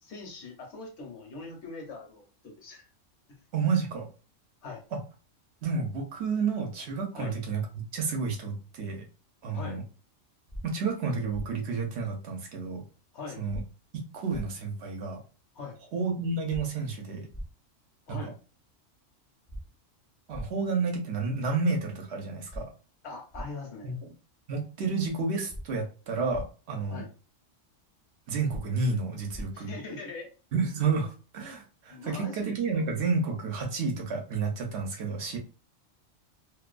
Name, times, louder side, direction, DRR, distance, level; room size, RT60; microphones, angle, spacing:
voice 1, 0.0-2.9 4.6-4.8 7.1-7.4 9.5-9.8 13.1-13.4 15.5-15.8 18.1-18.3 23.0-24.0 26.9-27.1 29.5-30.3 31.9-32.6, left 3 dB, 65° left, 2 dB, 1.0 m, -41 dB
voice 2, 3.5-4.1 4.9-5.0 5.6-7.6 7.9-9.0 9.4-9.8 10.6-12.8 13.4-13.6 14.1-15.2 15.9-17.3 18.1-18.2 20.3-22.7 23.8-24.1 24.5-27.0 28.3-29.7 30.5-35.4, right 4 dB, 65° right, 1 dB, 0.8 m, -30 dB
sound 1, 10.5-10.6 11.3-11.5 13.5-13.6 14.3-14.4 16.5-16.6 17.3-17.5 19.5-19.6 20.3-20.5 22.5-22.6 23.3-23.5 25.5-25.6 26.3-26.4 28.5-28.6 29.3-29.4, equal, 35° left, 0.4 m, -38 dB
2.5 x 2.2 x 2.3 m, 0.35 s
omnidirectional pair, 1.3 m